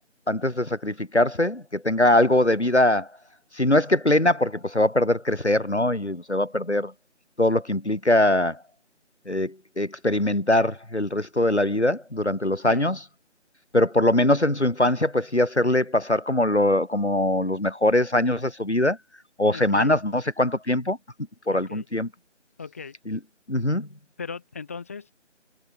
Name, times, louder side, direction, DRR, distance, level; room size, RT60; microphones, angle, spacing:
voice 1, 0.3-3.1 3.5-6.9 7.4-8.6 9.3-13.0 13.7-19.0 19.4-21.0 21.5-22.1 23.1-23.2 23.5-23.9, left 1 dB, 65° left, 8.0 m, -22 dB
voice 2, 19.5-19.9 21.5-21.9 22.6-23.0 24.2-25.1, left 5 dB, 10° left, 4.5 m, -37 dB
figure-of-eight pair, 170°, 37 cm